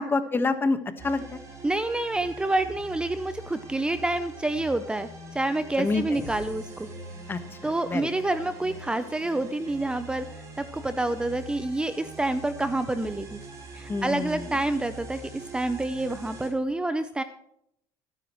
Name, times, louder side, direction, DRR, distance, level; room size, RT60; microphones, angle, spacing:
voice 1, 0.0-1.4 5.8-6.3 7.3-8.1 13.9-14.6, left 3 dB, 25° left, 9 dB, 1.4 m, -28 dB
sound 1, 1.0-16.5, right 1 dB, 35° right, 5.9 m, -43 dB
voice 2, 1.6-6.9 7.6-10.3 10.6-13.4 13.7-17.2, right 2 dB, 10° right, 11 dB, 0.6 m, -28 dB
23.0 x 10.0 x 3.1 m, 0.75 s
supercardioid pair, 105°, 9 cm